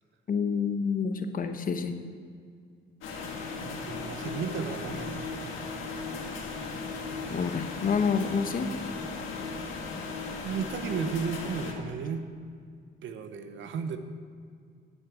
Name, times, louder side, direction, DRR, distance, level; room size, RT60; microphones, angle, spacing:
voice 1, 0.3-2.0 7.3-8.7, left 5 dB, 45° left, 8 dB, 0.9 m, -28 dB
sound 1, 3.0-11.7, left 4 dB, 85° left, 1.6 m, -37 dB
voice 2, 3.6-5.3 10.4-12.3 13.0-14.0, right 6 dB, 70° right, 9 dB, 0.9 m, -34 dB
10.0 x 8.3 x 6.2 m, 2.2 s
cardioid pair, 90°, 20 cm